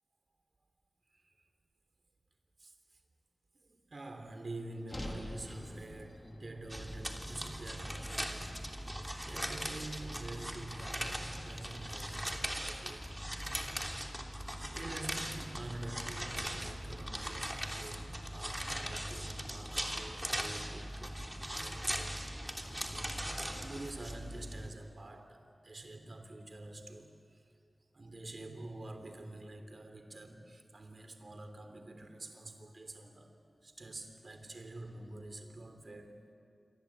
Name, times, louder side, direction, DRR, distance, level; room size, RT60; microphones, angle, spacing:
voice 1, 2.6-3.0 3.5-8.7 9.2-13.4 14.7-23.2 23.5-27.5 27.9-33.3 33.6-36.2, right 2 dB, 50° right, 6 dB, 3.4 m, -47 dB
sound 1, 4.9-9.1, left 1 dB, 25° left, 3.5 m, -48 dB
sound 2, 6.7-24.7, equal, 10° right, 3.2 m, -40 dB
28.0 x 24.0 x 8.8 m, 2.5 s
wide cardioid pair, 75°, 0 cm